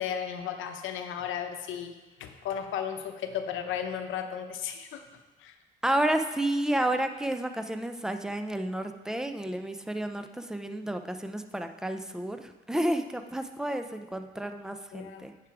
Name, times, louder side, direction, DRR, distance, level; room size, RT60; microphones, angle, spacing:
voice 1, 0.0-5.0 5.4-5.5 14.9-15.3, left 8 dB, 85° left, 7 dB, 0.8 m, -35 dB
voice 2, 5.8-15.3, right 1 dB, 5° right, 7 dB, 0.6 m, -31 dB
9.1 x 5.1 x 4.7 m, 1.2 s
cardioid pair, 90°, 20 cm